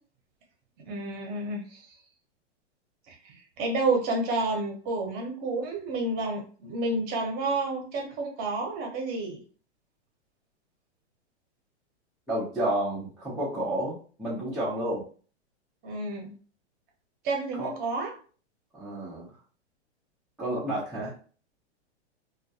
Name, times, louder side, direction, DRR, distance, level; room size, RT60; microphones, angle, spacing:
voice 1, 0.9-2.0 3.1-9.4 15.8-16.3 17.2-18.1, right 2 dB, 25° right, 1 dB, 0.7 m, -30 dB
voice 2, 12.3-15.0 17.6-17.7 18.7-19.3 20.4-21.1, right 1 dB, ahead, -11 dB, 0.3 m, -30 dB
2.3 x 2.1 x 2.6 m, 0.40 s
hypercardioid pair, 130°, 34 cm